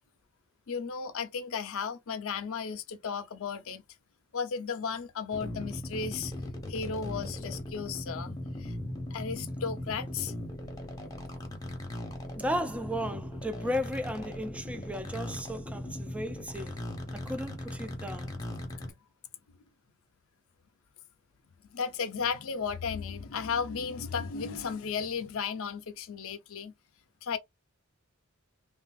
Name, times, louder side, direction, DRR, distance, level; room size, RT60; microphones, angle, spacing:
voice 1, 0.7-3.8 4.3-6.3 6.7-8.3 8.6-8.7 9.1-10.7 21.7-26.7 27.2-27.4, left 6 dB, 70° left, 0.5 m, -34 dB
sound 1, 5.3-18.9, left 1 dB, 15° left, 0.8 m, -38 dB
voice 2, 12.4-16.8 17.1-18.3, equal, 5° right, 0.3 m, -35 dB
3.2 x 2.4 x 2.3 m
head